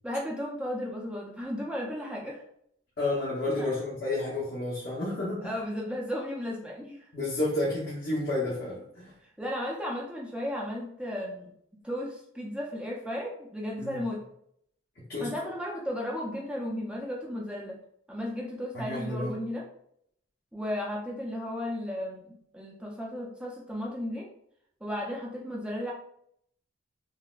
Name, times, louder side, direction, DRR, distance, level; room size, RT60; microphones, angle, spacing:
voice 1, 0.0-2.4 3.6-3.8 5.4-7.0 9.4-11.5 11.8-14.2 15.2-17.8 18.1-19.7 20.5-24.3 24.8-25.9, left 1 dB, 5° right, -2 dB, 0.4 m, -34 dB
voice 2, 3.0-5.6 7.1-9.1 13.8-14.0 15.1-15.3 18.7-19.4, left 2 dB, 50° left, -7 dB, 0.8 m, -31 dB
3.9 x 2.0 x 2.4 m, 0.69 s
head